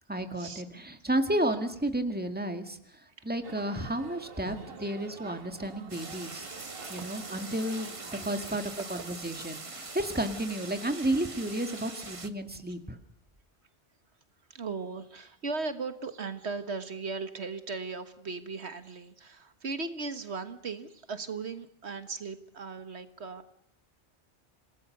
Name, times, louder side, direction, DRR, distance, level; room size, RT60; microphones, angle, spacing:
voice 1, 0.1-2.8 3.2-6.5 6.9-8.6 8.9-13.0, right 1 dB, 10° right, 7 dB, 2.0 m, -32 dB
sound 1, 3.4-8.6, right 5 dB, 55° right, 1.6 m, -47 dB
sound 2, 5.9-12.3, right 3 dB, 30° right, 1.3 m, -43 dB
voice 2, 8.5-9.1 14.5-23.5, right 4 dB, 70° right, 10 dB, 1.7 m, -38 dB
27.5 x 18.5 x 6.7 m, 0.71 s
omnidirectional pair, 1.1 m